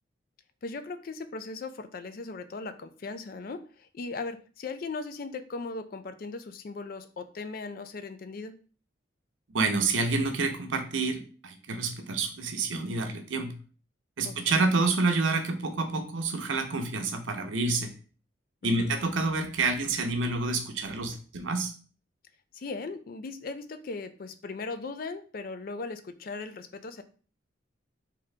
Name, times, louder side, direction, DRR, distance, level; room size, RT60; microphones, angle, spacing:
voice 1, 0.6-8.6 14.2-14.7 18.6-18.9 22.5-27.0, left 3 dB, 50° left, 10 dB, 0.4 m, -38 dB
voice 2, 9.5-13.6 14.2-17.9 18.6-21.7, right 3 dB, 85° right, 6 dB, 0.7 m, -28 dB
3.7 x 2.8 x 3.2 m, 0.39 s
head